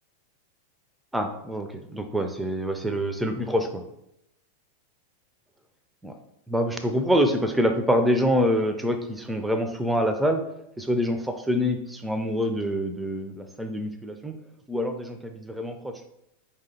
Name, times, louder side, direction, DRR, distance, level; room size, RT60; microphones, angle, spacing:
voice 1, 1.1-3.8 6.0-6.1 6.5-10.4 10.8-14.3 14.7-15.9, equal, 5° right, 6 dB, 0.4 m, -26 dB
4.8 x 2.8 x 2.7 m, 0.81 s
figure-of-eight pair, 90°, 0 cm